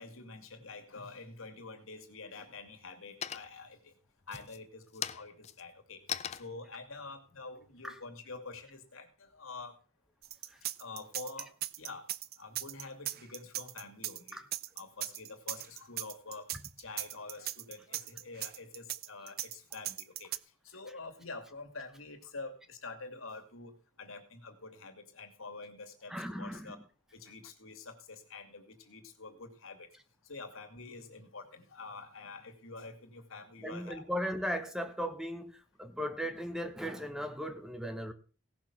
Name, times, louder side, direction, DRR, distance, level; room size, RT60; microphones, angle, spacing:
voice 1, 0.0-3.9 4.3-9.8 10.8-11.5 11.8-12.1 12.4-14.4 14.8-16.5 16.8-20.3 20.6-23.7 24.0-26.8 27.1-29.9 30.3-34.1, left 3 dB, 75° left, 5 dB, 2.5 m, -47 dB
sound 1, 1.5-2.1 2.5-3.0 3.2-3.8 4.2-8.6, left 9 dB, 30° left, 0.5 m, -42 dB
sound 2, 10.2-20.4, right 14 dB, 45° right, 0.6 m, -38 dB
voice 2, 26.1-26.8 33.6-38.1, equal, 5° right, 9 dB, 0.9 m, -37 dB
17.0 x 6.4 x 6.0 m, 0.39 s
head